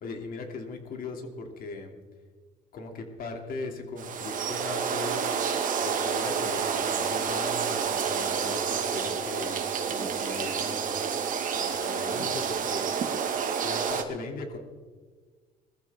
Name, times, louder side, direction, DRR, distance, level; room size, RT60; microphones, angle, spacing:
voice 1, 0.0-1.9 2.7-5.2 5.8-9.6 9.8-10.9 11.5-12.9 13.6-14.6, left 3 dB, 60° left, 3 dB, 2.9 m, -38 dB
sound 1, 4.0-14.0, right 7 dB, 55° right, 1.8 m, -29 dB
21.0 x 14.5 x 3.7 m, 1.5 s
cardioid pair, 110°, 17 cm